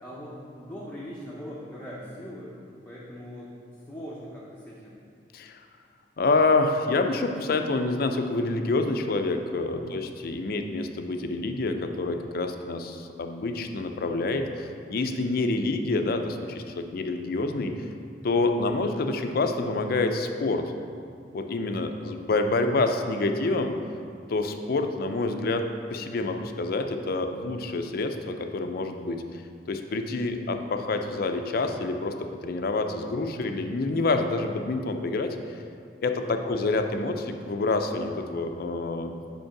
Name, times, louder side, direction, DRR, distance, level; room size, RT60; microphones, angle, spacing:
voice 1, 0.0-2.5 2.8-3.5 3.9-5.0 9.7-9.9 18.4-18.6 21.8-22.1 26.2-26.4 30.3-30.4 36.2-36.5, equal, 10° left, -7 dB, 0.7 m, -41 dB
voice 2, 6.2-17.7 18.2-20.7 21.3-23.8 24.3-29.4 29.7-35.4 36.0-39.1, left 3 dB, 60° left, 6 dB, 0.5 m, -27 dB
5.3 x 4.5 x 5.8 m, 2.4 s
head